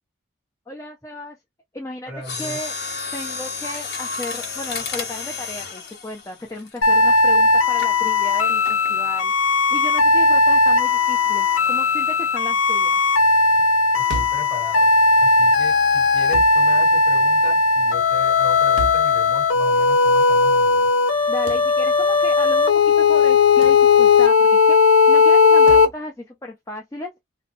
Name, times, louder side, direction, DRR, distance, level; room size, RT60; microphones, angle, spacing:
voice 1, 0.7-1.4 1.7-2.1 2.4-2.7 3.1-9.3 9.7-13.0 21.3-27.1, left 1 dB, 15° left, 0.4 m, -34 dB
voice 2, 2.1-2.6 13.9-14.9 15.2-20.9, equal, 5° right, 1.6 m, -37 dB
Mechanisms, 2.2-7.2 7.8-8.0 8.6-9.0 9.3-9.4, left 5 dB, 55° left, 0.9 m, -31 dB
sound 1, 6.8-25.9, left 4 dB, 85° left, 0.6 m, -17 dB
sound 2, 14.1-14.5 16.3-16.6 18.8-19.1 21.5-21.7 23.6-23.9 25.7-25.9, right 4 dB, 60° right, 0.4 m, -31 dB
2.5 x 2.1 x 2.7 m
head